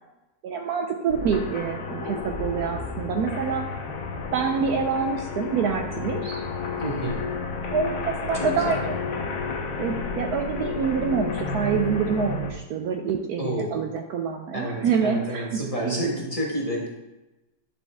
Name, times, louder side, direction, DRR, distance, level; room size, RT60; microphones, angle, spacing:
voice 1, 0.4-3.7 4.3-6.4 7.7-9.0 9.8-16.0, right 6 dB, 70° right, 4 dB, 1.0 m, -26 dB
sound 1, 1.1-12.5, left 4 dB, 85° left, 1.7 m, -31 dB
voice 2, 6.8-7.3 8.4-8.8 13.4-13.9 14.5-16.9, equal, 20° left, -3 dB, 1.1 m, -29 dB
10.5 x 5.2 x 3.4 m, 1.0 s
omnidirectional pair, 2.0 m